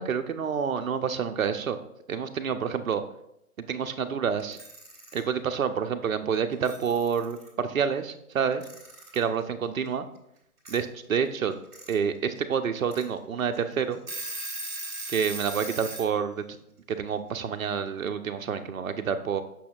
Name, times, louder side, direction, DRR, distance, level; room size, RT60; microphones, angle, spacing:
voice 1, 0.0-1.8 2.1-3.0 3.7-4.6 5.1-8.6 9.1-10.1 10.7-11.6 11.9-14.0 15.1-16.4 16.9-19.4, right 7 dB, 65° right, 8 dB, 0.7 m, -28 dB
Alarm / Clock, 4.4-5.2 6.3-6.4 6.6-7.5 8.6-9.2 10.6-10.8 11.5-11.9 12.4-12.5 12.9-13.0 13.5-13.6 13.9-16.1, right 2 dB, 10° right, 1.9 m, -38 dB
8.5 x 6.2 x 2.4 m, 0.78 s
figure-of-eight pair, 150°, 45 cm